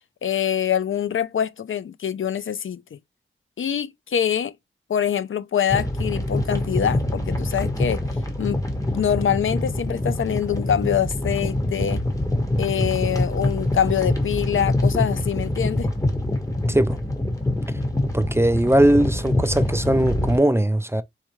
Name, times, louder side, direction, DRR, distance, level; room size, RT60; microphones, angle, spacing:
voice 1, 0.2-3.0 3.6-4.5 4.9-8.0 8.4-8.6 8.9-12.0 12.6-15.9, left 9 dB, 70° left, 0.4 m, -24 dB
sound 1, 5.7-20.4, left 1 dB, 15° left, 1.2 m, -25 dB
voice 2, 18.1-21.0, right 1 dB, 10° right, 0.4 m, -19 dB
4.2 x 3.5 x 3.1 m
wide cardioid pair, 95°, 21 cm